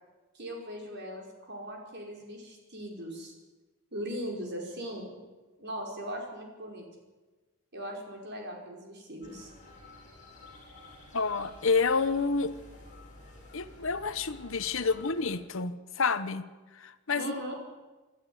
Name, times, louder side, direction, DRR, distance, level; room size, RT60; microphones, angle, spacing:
voice 1, 0.3-3.3 3.9-5.2 5.6-6.8 7.7-9.5 14.8-14.9 17.1-17.5, equal, 50° right, 1 dB, 5.1 m, -39 dB
sound 1, 9.2-15.4, left 2 dB, 35° left, 8.0 m, -51 dB
voice 2, 11.1-12.5 13.5-16.4 16.8-17.2, left 4 dB, 60° left, 12 dB, 1.0 m, -29 dB
26.0 x 12.0 x 9.6 m, 1.2 s
head